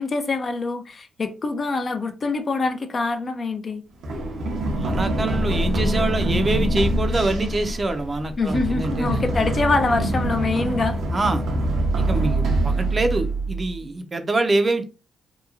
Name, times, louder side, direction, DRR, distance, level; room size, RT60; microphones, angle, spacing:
voice 1, 0.0-3.8 8.4-11.0, left 3 dB, 45° left, 0.5 m, -24 dB
Run, 4.0-13.8, right 1 dB, 75° right, 0.8 m, -24 dB
voice 2, 4.7-9.2 11.1-11.4 12.1-14.8, right 2 dB, 35° right, 0.6 m, -25 dB
2.9 x 2.2 x 2.4 m
supercardioid pair, 65°, 0 cm